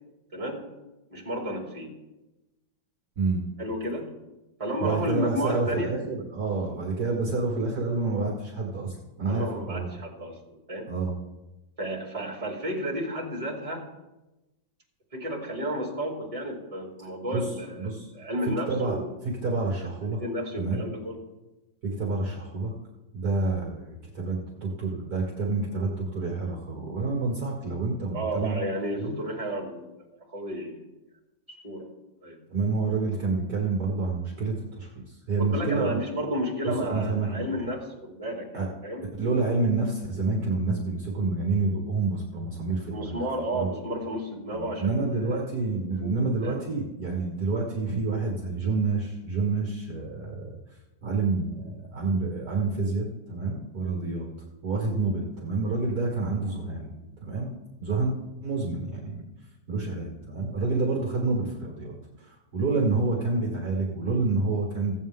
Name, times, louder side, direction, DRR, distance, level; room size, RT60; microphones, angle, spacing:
voice 1, 0.3-0.7 1.1-2.0 3.6-4.1 4.6-5.9 9.3-10.9 11.8-13.9 15.1-19.1 20.1-21.2 28.1-30.0 30.3-30.8 31.5-31.9 32.2-32.4 35.4-39.0 42.9-45.5 46.0-46.5, equal, 20° right, -3 dB, 2.7 m, -32 dB
voice 2, 4.8-9.9 10.9-11.1 17.3-17.4 17.8-18.1 18.4-19.0 19.2-20.2 20.6-20.8 21.8-22.7 23.1-28.6 29.0-29.2 32.5-36.0 36.6-37.7 38.5-38.7 39.2-43.2 43.5-43.7 44.5-50.6 51.0-54.3 54.6-56.9 57.2-57.5 57.8-58.1 58.4-59.2 59.7-64.9, right 3 dB, 55° right, -2 dB, 2.2 m, -28 dB
16.0 x 8.2 x 3.7 m, 1.0 s
omnidirectional pair, 2.0 m